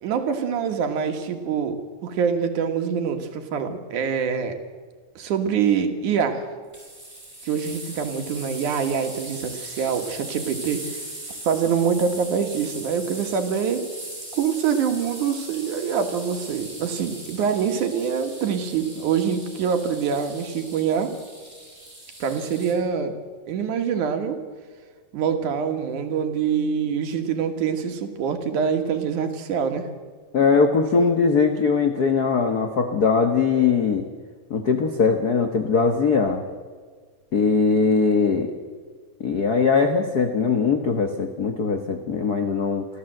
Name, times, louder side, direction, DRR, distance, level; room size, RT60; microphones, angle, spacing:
voice 1, 0.0-4.6 5.2-6.5 7.4-11.0 11.4-13.9 14.3-21.1 22.2-23.2 23.5-24.4 25.1-29.9, right 7 dB, 75° right, 6 dB, 3.1 m, -25 dB
sound 1, 6.7-22.7, right 1 dB, 10° right, 5.2 m, -39 dB
voice 2, 30.3-34.1 34.5-36.4 37.3-38.5 39.2-42.9, left 5 dB, 90° left, 6 dB, 0.8 m, -21 dB
27.0 x 13.5 x 7.7 m, 1.5 s
omnidirectional pair, 3.6 m